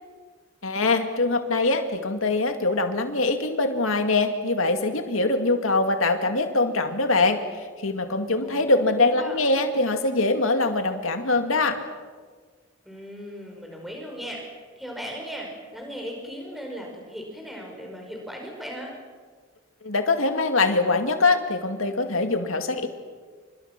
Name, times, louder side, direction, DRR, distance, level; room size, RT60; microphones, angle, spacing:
voice 1, 0.6-11.8 19.8-22.9, left 3 dB, 90° left, 6 dB, 2.3 m, -23 dB
voice 2, 8.4-9.4 12.9-14.4 14.8-18.9, equal, ahead, 0 dB, 5.3 m, -37 dB
28.5 x 26.5 x 6.0 m, 1.5 s
head